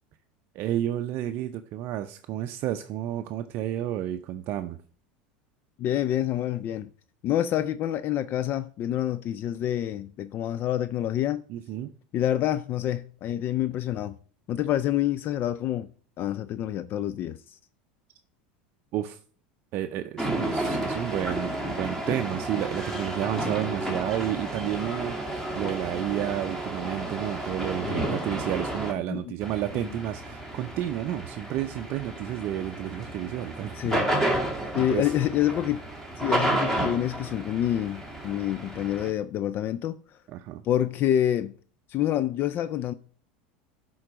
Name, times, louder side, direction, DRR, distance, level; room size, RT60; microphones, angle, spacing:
voice 1, 0.6-4.8 11.5-11.9 18.9-19.2 19.7-34.0 34.7-35.1 40.3-40.6, right 12 dB, 50° right, 0.5 m, -31 dB
voice 2, 5.8-6.9 7.2-11.4 12.1-14.2 14.5-15.9 16.2-17.6 27.8-28.2 29.1-29.3 29.7-29.9 33.7-34.1 34.7-35.8 36.2-40.0 40.6-41.5 41.9-42.9, left 11 dB, 45° left, 0.4 m, -27 dB
sound 1, 20.2-28.9 29.4-39.1, right 1 dB, 5° left, 1.9 m, -31 dB
10.5 x 3.8 x 5.0 m
hypercardioid pair, 100°, 5 cm